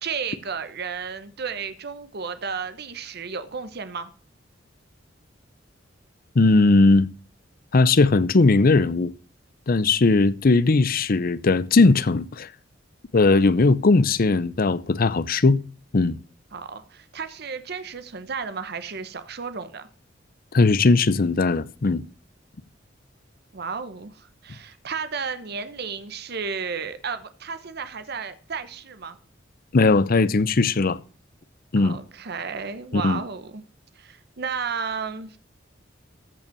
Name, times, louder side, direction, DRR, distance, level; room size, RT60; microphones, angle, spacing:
voice 1, 0.0-4.1 16.5-19.9 23.5-29.2 31.8-33.6 34.0-35.4, right 5 dB, 60° right, 0.9 m, -33 dB
voice 2, 6.4-7.1 7.7-9.1 9.7-12.5 13.1-15.6 15.9-16.2 20.5-22.0 29.7-31.0 31.7-32.0 32.9-33.2, left 3 dB, 50° left, 0.6 m, -18 dB
14.0 x 5.5 x 6.7 m
head